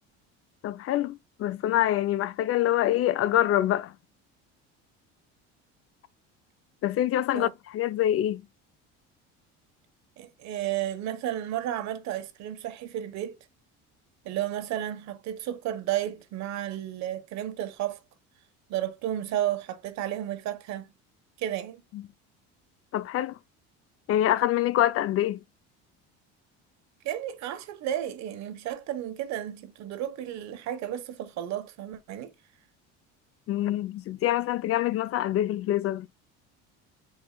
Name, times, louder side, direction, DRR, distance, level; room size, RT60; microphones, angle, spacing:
voice 1, 0.6-3.9 6.8-8.4 21.9-22.0 22.9-23.3 24.1-25.4 33.5-36.1, left 13 dB, 50° left, 0.6 m, -25 dB
voice 2, 10.2-13.4 14.2-18.0 18.7-20.9 21.4-21.8 27.0-32.3, right 12 dB, 65° right, 1.3 m, -32 dB
9.3 x 4.7 x 2.3 m
cardioid pair, 125°, 30 cm